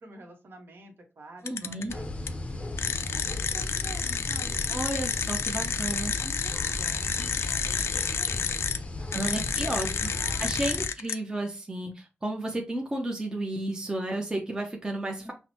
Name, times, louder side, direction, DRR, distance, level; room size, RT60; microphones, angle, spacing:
voice 1, 0.0-2.7 3.1-4.6 5.6-5.7 6.0-8.6 9.0-9.6 9.8-10.7 15.2-15.3, right 2 dB, 60° right, 3 dB, 1.0 m, -49 dB
voice 2, 1.4-1.9 4.7-6.1 9.1-15.3, right 1 dB, 20° right, 1 dB, 0.6 m, -32 dB
sound 1, 1.5-1.9 2.3-2.4 2.8-8.8 9.1-11.1, left 6 dB, 80° left, 0.3 m, -30 dB
sound 2, 1.9-10.9, left 2 dB, 30° left, 0.5 m, -35 dB
5.7 x 2.1 x 2.9 m, 0.30 s
wide cardioid pair, 140°, 4 cm